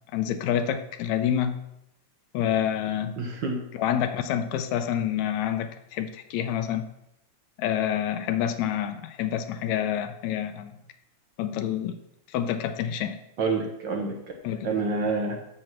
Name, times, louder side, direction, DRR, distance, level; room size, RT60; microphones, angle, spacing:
voice 1, 0.1-1.6 2.3-3.2 3.8-6.9 7.6-10.7 11.4-12.0 12.3-13.2 14.4-14.7, left 10 dB, 85° left, 8 dB, 2.0 m, -27 dB
voice 2, 3.2-3.6 13.4-14.2 14.6-15.4, right 3 dB, 60° right, 2 dB, 1.3 m, -27 dB
7.6 x 6.6 x 6.1 m, 0.81 s
omnidirectional pair, 3.3 m